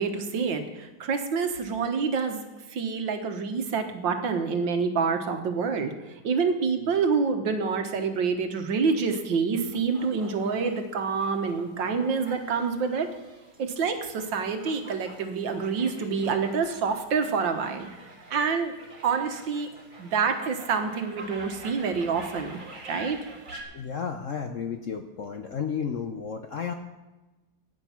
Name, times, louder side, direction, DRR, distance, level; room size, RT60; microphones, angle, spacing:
voice 1, 0.0-2.4 2.7-13.1 13.6-17.9 18.3-18.7 19.0-19.7 20.0-23.2, right 5 dB, 75° right, 6 dB, 1.9 m, -27 dB
sound 1, 9.7-23.6, right 2 dB, 25° right, 1.8 m, -47 dB
voice 2, 23.7-26.7, left 6 dB, 60° left, 6 dB, 0.8 m, -32 dB
15.0 x 9.3 x 5.8 m, 1.1 s
omnidirectional pair, 2.1 m